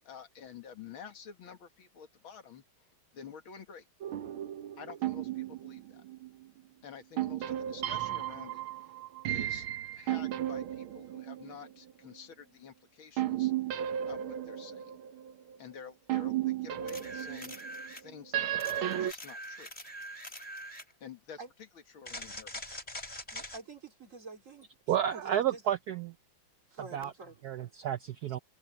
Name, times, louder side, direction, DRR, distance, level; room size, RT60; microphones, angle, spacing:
voice 1, 0.0-2.6 3.1-3.8 4.8-6.0 6.8-8.6 9.3-9.7 9.9-13.5 14.0-15.0 15.6-17.6 18.0-19.7 21.0-23.0, left 7 dB, 85° left, 2.7 m, -49 dB
sound 1, 4.0-6.5 7.2-11.9 13.2-15.6 16.1-19.1, right 12 dB, 90° right, 1.9 m, -34 dB
sound 2, 16.9-18.1 18.6-20.9 22.0-23.6 27.0-27.1, equal, 15° left, 4.1 m, -43 dB
voice 2, 23.3-25.6 26.7-27.4, right 4 dB, 40° right, 2.9 m, -48 dB
voice 3, 24.9-26.1 26.9-27.1 27.4-28.4, right 10 dB, 70° right, 1.0 m, -31 dB
omnidirectional pair, 2.2 m